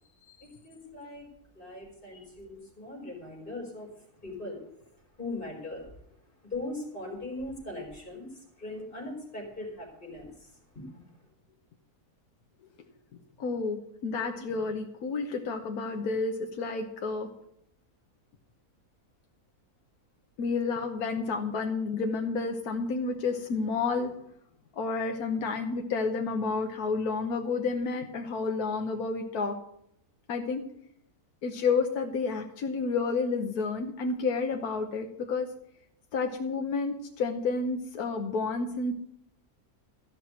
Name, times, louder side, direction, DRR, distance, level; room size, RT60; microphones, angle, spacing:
voice 1, 0.6-1.3 1.5-4.6 5.2-5.9 6.2-11.0, left 2 dB, 35° left, 4.4 m, -40 dB
voice 2, 13.4-17.3 20.4-24.1 24.8-29.5 30.3-30.6 31.4-35.5 36.1-38.9, left 4 dB, 85° left, 1.5 m, -30 dB
14.0 x 5.9 x 9.4 m
omnidirectional pair, 1.5 m